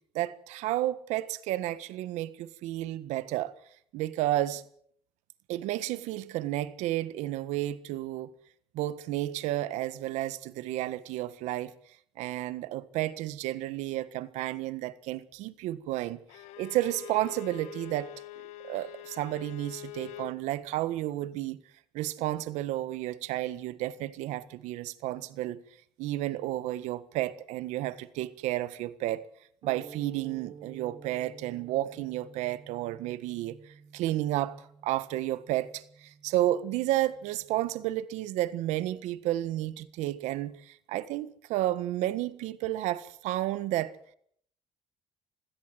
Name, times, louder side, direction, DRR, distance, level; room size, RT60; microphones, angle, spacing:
voice 1, 0.1-3.5 3.9-4.6 5.5-8.3 8.7-11.7 12.2-16.2 16.6-18.1 18.6-21.6 21.9-25.6 26.0-29.3 29.6-33.6 33.9-43.9, right 15 dB, 85° right, 1.5 m, -32 dB
Bowed string instrument, 16.3-20.4, left 12 dB, 90° left, 1.3 m, -44 dB
sound 1, 29.6-38.0, right 5 dB, 40° right, 5.3 m, -52 dB
25.0 x 16.5 x 7.9 m
cardioid pair, 100°, 12 cm